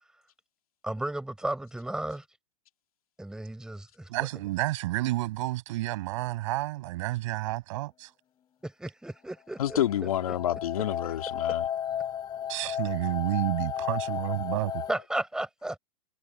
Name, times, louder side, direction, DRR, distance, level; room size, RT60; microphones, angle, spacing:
voice 1, 0.8-2.2 3.2-4.3 8.6-9.8 14.9-15.8, right 1 dB, 5° right, 7.1 m, -34 dB
voice 2, 4.1-8.1 12.5-14.8, right 18 dB, 60° right, 7.0 m, -30 dB
sound 1, 9.5-14.9, left 9 dB, 25° left, 4.5 m, -34 dB
voice 3, 9.6-11.6, left 11 dB, 75° left, 2.5 m, -28 dB
hypercardioid pair, 135°, 18 cm